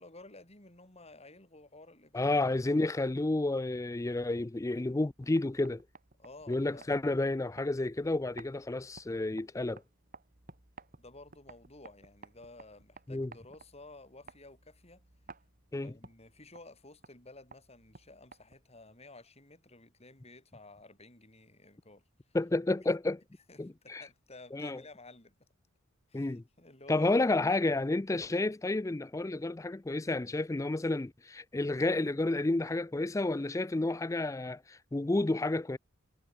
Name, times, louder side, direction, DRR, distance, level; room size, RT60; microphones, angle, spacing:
voice 1, 0.0-2.4 6.2-6.9 11.0-15.0 15.7-22.0 22.3-22.4 23.5-25.4 26.1-27.4, left 2 dB, 30° left, 6.7 m, -53 dB
voice 2, 2.1-5.8 6.5-9.8 13.1-13.3 15.7-15.9 22.3-23.2 23.6-24.0 24.5-24.8 26.1-26.4 26.9-35.8, left 2 dB, 15° left, 0.4 m, -31 dB
Pasos Bailarina, 5.1-18.8, right 3 dB, 40° right, 3.1 m, -57 dB
head